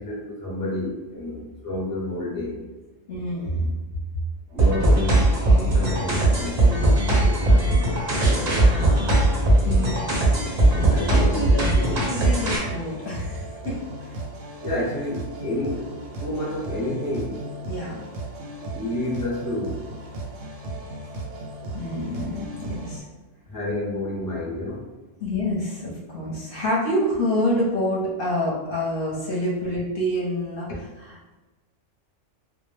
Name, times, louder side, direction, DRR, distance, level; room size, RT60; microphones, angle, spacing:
voice 1, 0.0-2.6 4.5-9.2 10.7-12.0 14.6-15.9 16.2-17.4 18.7-19.8 23.5-24.9, left 1 dB, 25° left, -5 dB, 0.5 m, -30 dB
voice 2, 3.1-3.7 9.6-10.1 11.1-13.7 14.1-14.2 17.7-18.0 21.7-23.0 25.2-30.7, left 1 dB, 55° left, -6 dB, 0.8 m, -27 dB
sound 1, 4.5-23.0, right 2 dB, 80° right, 0.9 m, -36 dB
sound 2, 4.6-12.6, right 1 dB, 50° right, 0.5 m, -19 dB
2.2 x 2.1 x 3.1 m, 1.2 s
omnidirectional pair, 1.3 m